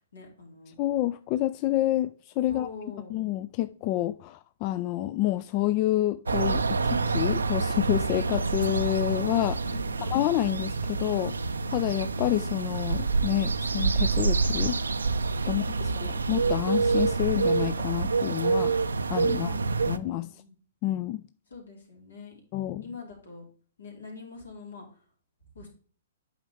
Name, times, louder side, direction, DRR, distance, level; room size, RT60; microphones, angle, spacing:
voice 1, 0.0-0.8 2.4-3.2 9.6-10.1 15.5-16.2 19.3-20.6 21.5-22.4 22.8-23.4 23.8-25.0 25.5-25.7, left 4 dB, 75° left, 2.8 m, -45 dB
voice 2, 0.8-2.7 3.1-9.6 10.1-11.4 11.7-14.8 15.5-15.6 16.0-18.7 19.1-19.5 19.9-20.3 20.8-21.2 22.5-22.8, left 15 dB, 35° left, 0.3 m, -28 dB
sound 1, 6.3-20.0, right 4 dB, 80° right, 0.5 m, -27 dB
8.6 x 5.2 x 3.5 m
figure-of-eight pair, 120°, 0 cm